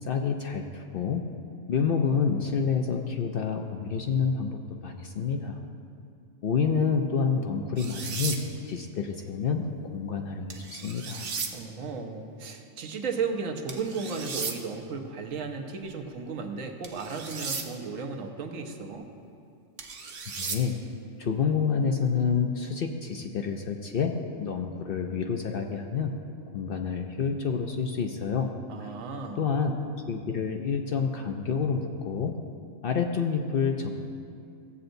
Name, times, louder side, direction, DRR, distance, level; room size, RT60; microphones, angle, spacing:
voice 1, 0.0-1.3 1.7-5.6 6.4-8.4 8.7-11.3 20.4-20.7 21.2-26.1 26.5-28.5 28.8-28.9 29.4-29.7 30.1-32.4 32.8-34.0, left 6 dB, 60° left, 4 dB, 0.6 m, -28 dB
sound 1, 7.8-8.4 10.5-11.5 13.7-14.5 16.8-17.7 19.8-20.6, right 5 dB, 55° right, 0.9 m, -35 dB
voice 2, 11.5-19.1 28.7-29.4, right 5 dB, 80° right, 4 dB, 1.2 m, -34 dB
15.5 x 7.7 x 2.6 m, 2.6 s
omnidirectional pair, 1.3 m